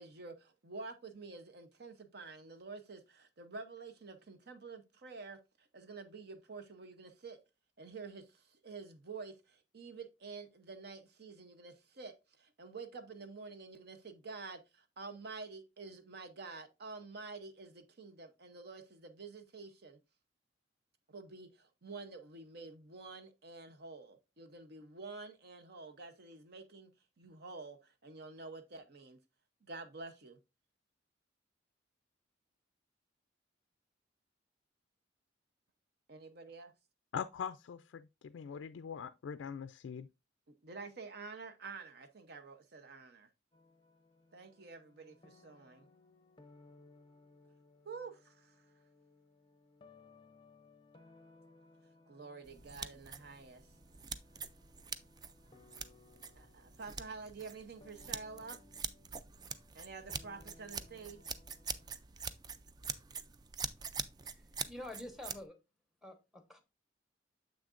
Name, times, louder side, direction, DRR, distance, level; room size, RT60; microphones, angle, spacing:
voice 1, 0.0-7.4 7.8-20.0 21.1-26.9 27.2-29.2 29.6-30.4 36.1-36.7 40.6-43.3 44.3-45.9 47.8-48.5 52.1-53.7 56.4-58.6 59.7-61.2, right 4 dB, 55° right, 0.7 m, -49 dB
voice 2, 37.1-40.1, left 7 dB, 80° left, 0.3 m, -42 dB
sound 1, 43.5-62.0, left 3 dB, 25° left, 0.6 m, -63 dB
sound 2, 52.4-65.4, right 6 dB, 20° right, 0.3 m, -45 dB
voice 3, 64.2-65.6 66.0-66.6, left 1 dB, ahead, 1.0 m, -48 dB
7.1 x 6.2 x 2.5 m
head